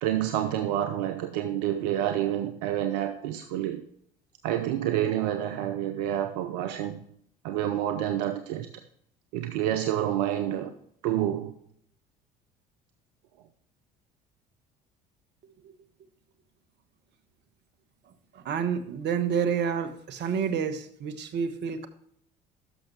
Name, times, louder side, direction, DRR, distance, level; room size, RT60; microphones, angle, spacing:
voice 1, 0.0-3.8 4.4-7.0 7.4-8.7 9.3-10.7 11.0-11.5, right 11 dB, 75° right, 8 dB, 0.7 m, -28 dB
voice 2, 18.3-21.9, right 7 dB, 55° right, 11 dB, 1.2 m, -29 dB
11.5 x 6.5 x 3.0 m, 0.66 s
hypercardioid pair, 65°, 21 cm